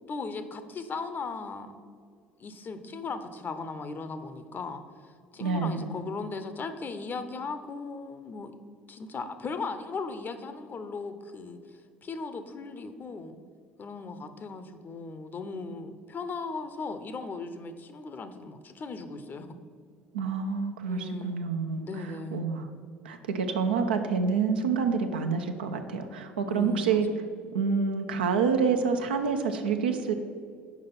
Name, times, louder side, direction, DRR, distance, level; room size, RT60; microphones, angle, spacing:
voice 1, 0.0-1.7 2.4-4.8 5.3-8.5 8.9-11.6 12.0-13.4 13.8-19.6 20.9-21.4 21.8-22.4 26.5-27.0, left 4 dB, 40° left, 10 dB, 0.7 m, -37 dB
voice 2, 5.4-5.8 20.1-22.7 23.0-27.1 27.5-30.1, right 5 dB, 85° right, 5 dB, 0.6 m, -28 dB
5.9 x 5.0 x 5.9 m, 2.1 s
hypercardioid pair, 65°, 5 cm